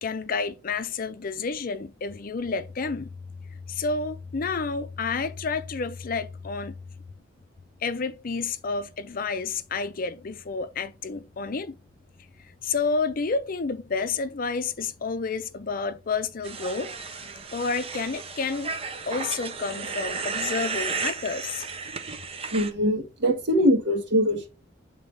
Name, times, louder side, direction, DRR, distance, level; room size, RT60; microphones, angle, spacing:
voice 1, 0.0-3.1 3.7-6.8 7.8-11.8 12.6-16.9 17.2-18.7 19.1-21.7, left 4 dB, 50° left, 0.5 m, -30 dB
sound 1, 16.4-22.7, right 4 dB, 35° right, 0.7 m, -33 dB
voice 2, 22.5-24.5, equal, 70° right, 1.5 m, -22 dB
7.7 x 4.0 x 3.3 m
head